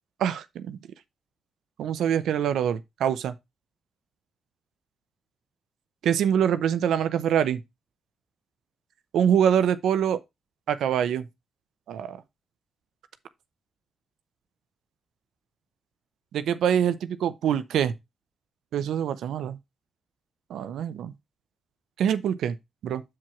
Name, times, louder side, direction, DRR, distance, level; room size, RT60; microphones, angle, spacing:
voice 1, 0.2-0.8 1.8-3.3 6.0-7.6 9.1-10.2 10.7-11.3 11.9-12.2 16.3-17.9 18.7-19.6 20.5-21.1 22.0-22.6 22.8-23.0, right 9 dB, 85° right, 0.7 m, -24 dB
7.3 x 4.9 x 4.3 m
cardioid pair, 75°, 0 cm